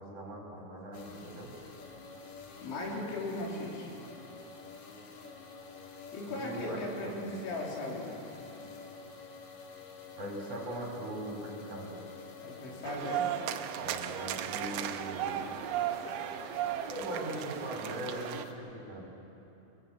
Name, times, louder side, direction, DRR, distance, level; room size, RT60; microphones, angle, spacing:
voice 1, 0.0-1.5 6.3-7.1 10.2-11.9 13.8-15.5 16.9-19.0, right 1 dB, 35° right, -1 dB, 4.9 m, -40 dB
sound 1, 0.9-18.5, left 4 dB, 60° left, 1.6 m, -49 dB
voice 2, 2.6-3.9 6.1-8.2 12.4-13.3, left 2 dB, 85° left, -2 dB, 5.7 m, -37 dB
sound 2, 12.8-18.5, right 11 dB, 90° right, 3.1 m, -35 dB
23.0 x 22.0 x 7.3 m, 2.9 s
omnidirectional pair, 5.3 m